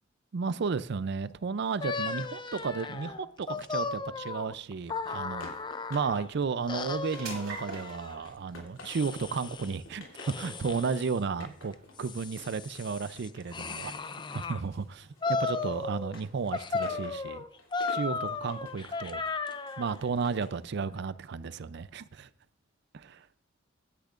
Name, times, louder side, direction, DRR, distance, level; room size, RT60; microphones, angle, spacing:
voice 1, 0.3-5.5 5.9-14.0 14.3-17.4 17.9-19.2 19.8-22.3 22.9-23.3, right 5 dB, 55° right, 0.4 m, -33 dB
sound 1, 1.8-6.3 6.7-8.2 8.8-9.8 10.1-11.2 11.7-14.6 15.2-16.2 16.5-20.0, left 4 dB, 25° left, 0.5 m, -35 dB
sound 2, 4.1-18.6, right 4 dB, 80° right, 4.0 m, -52 dB
sound 3, 5.1-6.2 6.6-7.8 8.2-9.2 9.5-10.4 11.2-14.3 14.6-20.6, left 2 dB, 75° left, 2.9 m, -51 dB
16.0 x 10.5 x 2.5 m
head